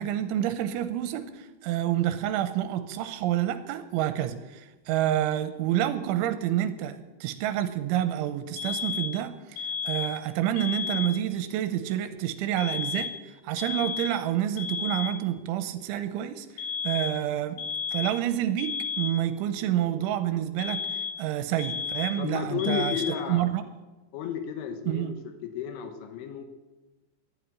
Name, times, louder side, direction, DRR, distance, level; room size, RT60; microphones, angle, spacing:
voice 1, 0.0-17.6 17.9-23.0 23.3-23.7 24.9-25.1, right 12 dB, 90° right, 10 dB, 3.2 m, -28 dB
sound 1, 8.6-9.2 9.6-10.2 10.6-11.2 12.6-13.3 13.6-14.2 14.6-15.2 16.6-17.2 17.6-18.3 18.6-19.3 20.6-21.3 21.6-22.3 22.6-23.3, left 6 dB, 65° left, 3.1 m, -33 dB
voice 2, 22.2-23.5 24.1-25.2 25.4-26.5, left 8 dB, 85° left, 7 dB, 3.6 m, -32 dB
11.0 x 11.0 x 9.7 m, 1.2 s
omnidirectional pair, 5.4 m